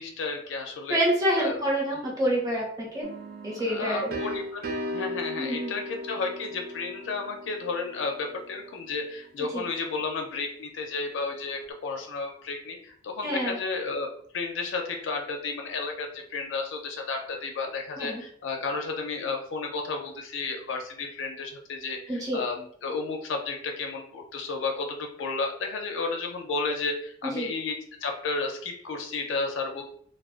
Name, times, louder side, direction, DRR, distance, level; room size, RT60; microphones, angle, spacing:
voice 1, 0.0-1.0 1.4-2.0 3.6-29.8, left 4 dB, 75° left, 3 dB, 0.4 m, -32 dB
voice 2, 0.9-3.1 3.4-4.2 5.4-5.7 9.5-9.7 13.2-13.6 18.0-18.2 22.1-22.4 27.3-27.5, equal, 20° right, -3 dB, 0.7 m, -27 dB
sound 1, 3.0-8.7, left 1 dB, 55° right, 0.3 m, -37 dB
2.3 x 2.1 x 2.4 m, 0.63 s
head